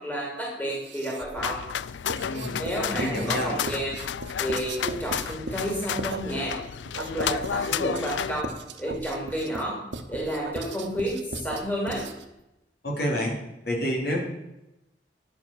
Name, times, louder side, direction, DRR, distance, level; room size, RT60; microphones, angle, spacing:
voice 1, 0.0-1.6 2.6-4.0 4.4-6.5 7.0-8.5 8.8-9.8 10.1-12.1, equal, 10° left, -3 dB, 3.0 m, -30 dB
Writing, 0.7-1.4 2.1-12.4, right 3 dB, 85° right, 1.0 m, -39 dB
sound 1, 1.4-8.4, left 8 dB, 80° left, 0.4 m, -32 dB
voice 2, 2.2-2.6 2.9-3.5 12.8-13.4 13.7-14.2, equal, 60° left, -2 dB, 3.6 m, -28 dB
sound 2, 6.1-6.2 6.9-7.1 7.9-8.0 8.8-9.0 10.4-10.6 11.5-11.6, right 4 dB, 60° right, 0.7 m, -38 dB
11.0 x 7.3 x 6.6 m, 0.92 s
head